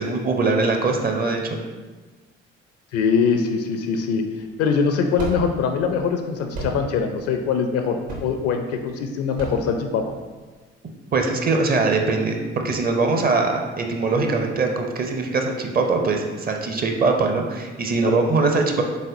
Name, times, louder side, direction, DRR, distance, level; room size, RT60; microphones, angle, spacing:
voice 1, 0.0-1.6 11.1-18.8, right 3 dB, 25° right, 3 dB, 0.6 m, -22 dB
voice 2, 2.9-10.0 18.0-18.2, left 5 dB, 45° left, 6 dB, 0.4 m, -23 dB
sound 1, 4.4-10.6, right 2 dB, 65° right, 1.1 m, -36 dB
4.1 x 3.7 x 2.6 m, 1.3 s
figure-of-eight pair, 50°, 34 cm